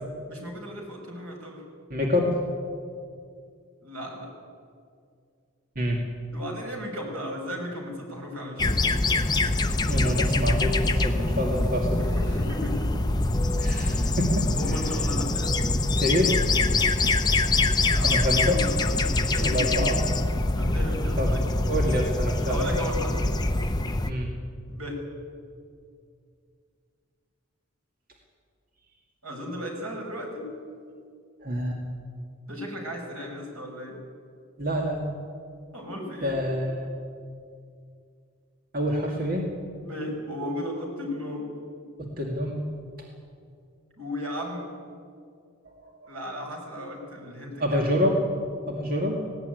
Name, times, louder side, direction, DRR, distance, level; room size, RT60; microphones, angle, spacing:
voice 1, 0.3-1.6 3.8-4.3 6.3-8.8 12.0-13.0 14.4-15.6 17.9-19.9 20.5-21.4 22.5-23.2 24.7-25.1 29.2-30.5 32.5-34.0 35.7-36.4 39.8-41.5 44.0-44.7 46.1-47.8, equal, 85° right, 1 dB, 5.9 m, -35 dB
voice 2, 1.9-2.4 5.8-6.0 9.9-12.0 13.6-14.8 15.9-16.4 18.0-18.6 19.4-20.0 21.2-21.3 21.7-22.6 24.1-24.3 31.4-31.8 34.6-35.1 36.2-36.9 38.7-39.5 42.0-42.6 45.7-46.1 47.6-48.2 48.7-49.2, equal, 40° right, 0 dB, 2.2 m, -27 dB
sound 1, 8.6-24.1, left 2 dB, 20° left, 0.7 m, -24 dB
18.5 x 17.5 x 9.3 m, 2.3 s
head